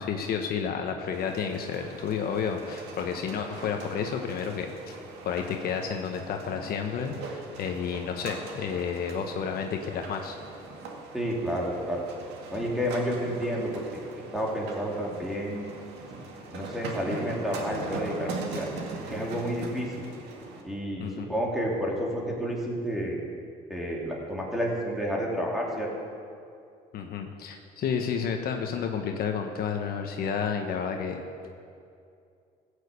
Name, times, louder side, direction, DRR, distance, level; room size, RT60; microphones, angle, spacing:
voice 1, 0.0-5.0 5.2-10.4 21.0-21.3 26.9-31.2, left 6 dB, 65° left, 4 dB, 1.1 m, -31 dB
sound 1, 1.1-20.6, right 3 dB, 85° right, 2.0 m, -41 dB
voice 2, 11.1-12.0 12.5-13.8 14.3-15.8 16.5-18.7 19.1-20.0 20.6-23.2 23.7-25.9, equal, ahead, -3 dB, 3.1 m, -30 dB
15.5 x 6.6 x 8.3 m, 2.4 s
cardioid pair, 110°, 17 cm